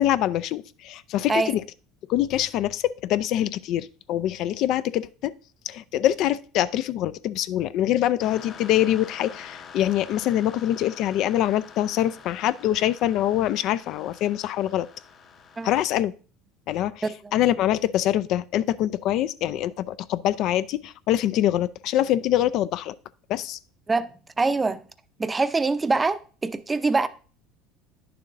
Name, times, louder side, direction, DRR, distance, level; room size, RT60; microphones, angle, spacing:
voice 1, 0.0-1.6 2.1-5.3 5.6-14.9 15.6-16.1 16.7-17.0 17.3-22.9 23.3-23.6, left 12 dB, 60° left, 0.3 m, -24 dB
sound 1, 8.2-15.8, left 6 dB, 40° left, 0.9 m, -46 dB
voice 2, 17.0-17.3 23.9-24.1 24.4-24.8 25.2-27.1, right 3 dB, 15° right, 0.5 m, -24 dB
9.9 x 6.8 x 2.6 m
supercardioid pair, 115°, 0 cm